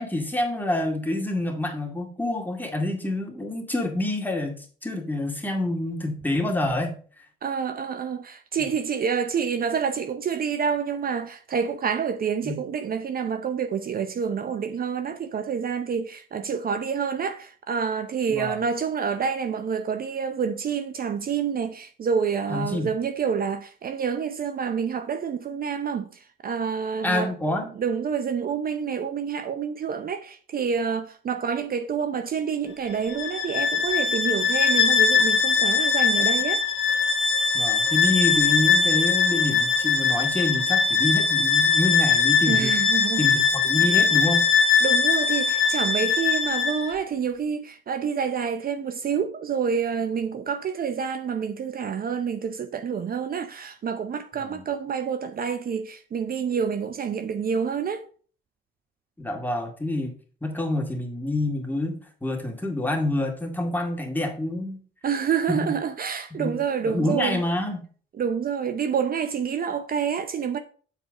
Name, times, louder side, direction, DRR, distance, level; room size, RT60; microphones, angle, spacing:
voice 1, 0.0-7.0 12.4-12.6 18.3-18.6 22.5-22.9 27.0-27.7 37.5-42.8 43.2-44.5 54.4-54.6 59.2-60.1 60.4-64.8 65.5-65.8 66.3-67.8, left 1 dB, 10° left, 2.1 m, -27 dB
voice 2, 7.4-27.3 27.8-36.6 42.5-43.3 44.8-58.1 65.0-67.4 68.2-70.6, right 6 dB, 50° right, 0.7 m, -28 dB
Bowed string instrument, 33.1-46.9, left 5 dB, 85° left, 1.1 m, -21 dB
7.3 x 4.6 x 5.3 m
cardioid pair, 90°, 20 cm